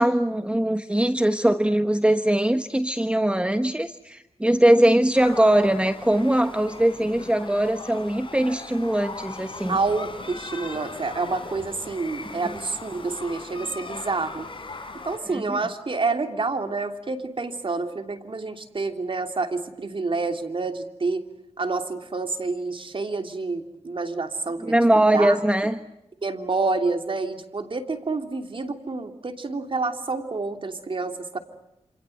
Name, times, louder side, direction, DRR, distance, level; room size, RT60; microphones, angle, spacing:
voice 1, 0.0-9.8 15.3-15.6 24.6-25.8, right 1 dB, 10° right, 9 dB, 1.2 m, -21 dB
sound 1, 5.1-15.2, left 3 dB, 50° left, 5.5 m, -39 dB
voice 2, 9.7-14.5 15.0-21.3 21.6-24.8 25.1-25.4 26.2-31.4, right 3 dB, 55° right, 6 dB, 2.9 m, -28 dB
28.0 x 27.0 x 7.9 m, 0.86 s
wide cardioid pair, 70°, 11 cm